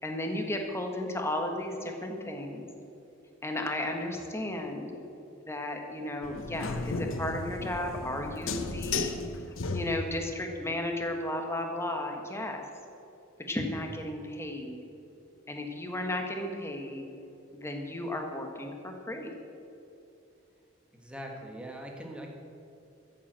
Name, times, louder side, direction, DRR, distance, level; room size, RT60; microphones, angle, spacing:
voice 1, 0.0-2.7 3.4-5.0 5.5-9.2 9.7-12.6 13.5-14.8 15.5-17.1 17.5-19.3, left 1 dB, 15° left, 3 dB, 1.5 m, -34 dB
sound 1, 6.2-10.3, left 3 dB, 80° left, 0.9 m, -34 dB
voice 2, 20.9-22.3, right 1 dB, 5° right, 0 dB, 1.6 m, -42 dB
13.5 x 7.8 x 7.5 m, 2.8 s
head